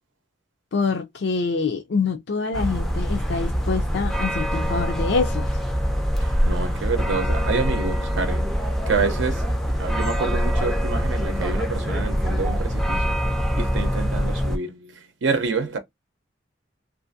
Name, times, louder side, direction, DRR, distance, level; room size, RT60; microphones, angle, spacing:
voice 1, 0.7-5.6, left 4 dB, 65° left, 0.4 m, -25 dB
sound 1, 2.5-14.6, equal, ahead, 0.4 m, -24 dB
voice 2, 6.2-8.5 8.9-13.2 13.6-15.8, right 4 dB, 80° right, 0.6 m, -28 dB
2.6 x 2.5 x 2.5 m
head